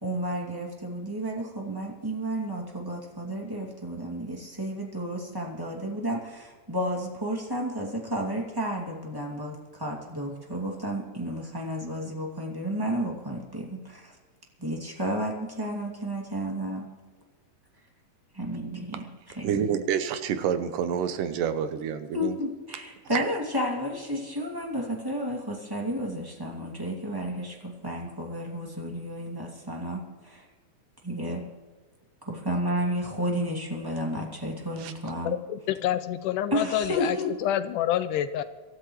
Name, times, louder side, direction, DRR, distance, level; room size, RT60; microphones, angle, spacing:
voice 1, 0.0-14.2 14.6-16.9 18.3-19.1 19.3-19.7 22.1-30.4 31.0-31.4 32.3-35.4 36.5-37.5, equal, 10° right, -1 dB, 1.8 m, -32 dB
voice 2, 19.4-22.4 23.1-23.2 34.8-34.9, right 8 dB, 75° right, 9 dB, 2.4 m, -28 dB
voice 3, 35.3-37.2 37.4-38.4, left 11 dB, 80° left, 11 dB, 1.9 m, -27 dB
24.5 x 13.5 x 3.2 m, 1.4 s
omnidirectional pair, 4.1 m